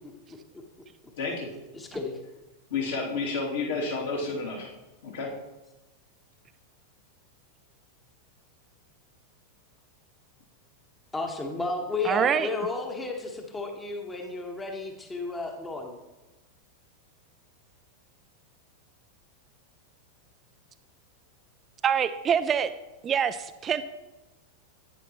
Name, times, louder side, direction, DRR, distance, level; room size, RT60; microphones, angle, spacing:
voice 1, 1.2-1.5 2.7-4.7 5.0-5.3, left 4 dB, 60° left, -3 dB, 2.5 m, -30 dB
voice 2, 1.7-2.2 11.1-16.0, left 3 dB, 15° left, 3 dB, 1.1 m, -33 dB
voice 3, 12.0-12.5 21.8-22.7 23.0-23.8, right 8 dB, 25° right, 11 dB, 0.4 m, -25 dB
10.5 x 9.2 x 3.0 m, 1.1 s
figure-of-eight pair, 90°, 0 cm